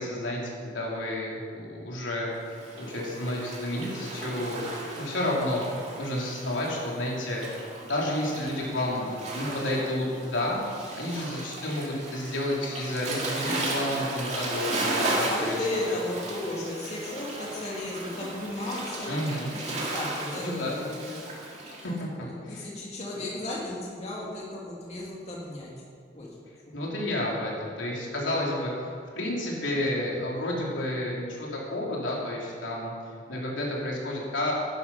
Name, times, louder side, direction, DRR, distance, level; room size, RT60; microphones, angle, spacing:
voice 1, 0.0-4.6 4.9-5.6 6.0-7.4 7.9-10.6 10.9-15.6 15.9-16.0 19.0-19.5 20.4-20.8 21.8-22.1 22.4-22.7 23.2-23.3 26.7-28.7 29.1-32.9 33.3-34.5, left 1 dB, 85° left, -4 dB, 3.4 m, -31 dB
Waves surf, 2.5-21.9, right 2 dB, 35° right, 2.2 m, -35 dB
voice 2, 15.3-19.1 19.5-21.1 21.9-25.7 26.1-26.4, left 1 dB, 35° left, -5 dB, 2.4 m, -34 dB
13.0 x 10.5 x 5.7 m, 2.3 s
head